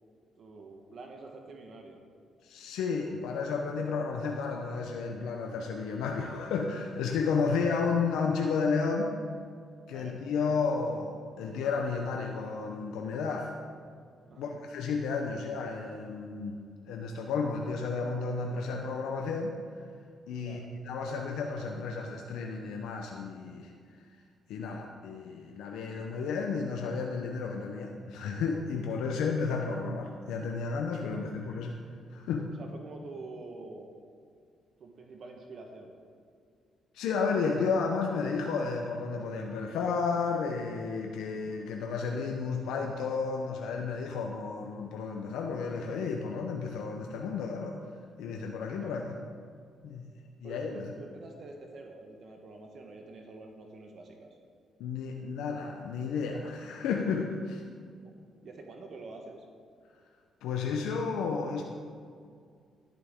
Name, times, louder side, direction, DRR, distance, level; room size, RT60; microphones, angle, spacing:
voice 1, 0.4-2.0 7.5-7.6 9.9-10.2 14.3-14.6 20.4-20.7 32.6-34.0 34.8-35.9 48.7-49.0 50.4-54.4 58.0-58.1 58.4-59.4, right 3 dB, 55° right, 2 dB, 1.2 m, -47 dB
voice 2, 2.4-9.2 9.9-13.5 14.4-16.6 16.9-19.8 20.3-23.7 24.5-31.8 32.1-32.5 36.9-47.8 48.2-49.0 49.8-50.1 50.4-50.9 54.8-57.6 60.4-61.6, left 5 dB, 85° left, 1 dB, 0.7 m, -32 dB
11.5 x 10.5 x 3.6 m, 2.2 s
cardioid pair, 90°, 0 cm